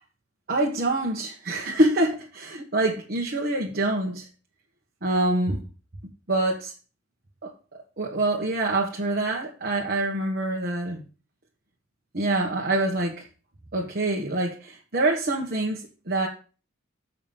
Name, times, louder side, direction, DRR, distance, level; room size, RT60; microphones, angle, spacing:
voice 1, 0.5-4.3 5.0-5.6 6.3-6.7 7.4-7.5 8.0-11.0 12.1-13.3 13.7-16.3, right 2 dB, 50° right, 1.4 m, -25 dB
7.3 x 5.8 x 7.1 m
head